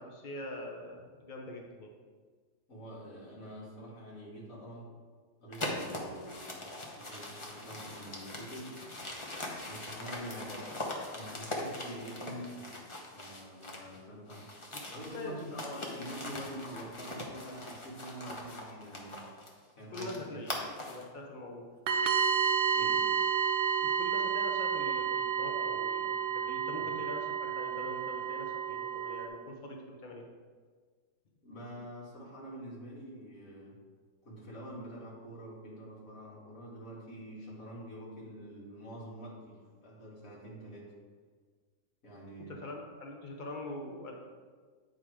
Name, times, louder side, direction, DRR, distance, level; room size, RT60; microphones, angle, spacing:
voice 1, 0.0-1.9 10.5-10.6 14.7-15.4 19.8-21.7 23.8-30.2 42.4-44.1, left 2 dB, 90° left, 0 dB, 0.4 m, -44 dB
voice 2, 2.7-4.9 5.4-8.8 9.6-10.6 11.1-12.8 13.1-14.5 14.9-19.3 19.8-20.5 22.7-23.0 26.8-26.9 31.4-33.8 34.2-40.9 42.0-42.5, right 1 dB, 45° left, -7 dB, 2.4 m, -46 dB
sound 1, 5.5-14.0 14.3-21.1, left 1 dB, 30° left, 0.5 m, -41 dB
sound 2, 21.9-29.3, right 7 dB, 70° right, 1.0 m, -31 dB
8.8 x 4.1 x 4.8 m, 1.5 s
omnidirectional pair, 2.0 m